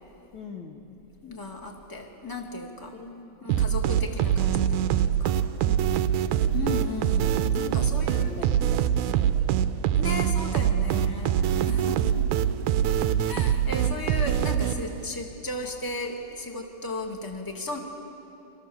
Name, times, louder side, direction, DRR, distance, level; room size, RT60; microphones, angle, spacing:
voice 1, 0.3-1.0 2.9-3.7 5.6-6.6 7.4-10.0 10.9-11.5, left 5 dB, 65° left, 2 dB, 1.2 m, -44 dB
voice 2, 1.2-2.9 3.4-5.3 6.5-8.3 10.0-12.6 13.2-17.8, left 2 dB, 10° left, 2 dB, 1.5 m, -35 dB
sound 1, 3.5-15.1, right 10 dB, 80° right, 1.8 m, -24 dB
29.5 x 26.0 x 7.3 m, 2.9 s
omnidirectional pair, 4.2 m